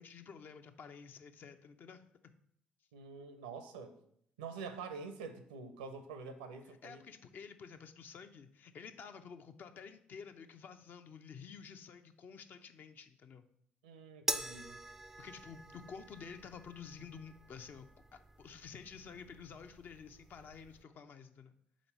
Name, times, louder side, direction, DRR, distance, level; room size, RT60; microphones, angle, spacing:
voice 1, 0.0-2.0 6.8-13.4 15.2-21.5, left 6 dB, 45° left, 8 dB, 0.6 m, -51 dB
voice 2, 2.9-3.9 4.4-7.0 13.8-14.8, right 5 dB, 75° right, 8 dB, 0.6 m, -46 dB
sound 1, 14.3-20.8, right 1 dB, 10° right, 0.4 m, -45 dB
5.1 x 4.1 x 5.7 m, 0.69 s
figure-of-eight pair, 45°, 4 cm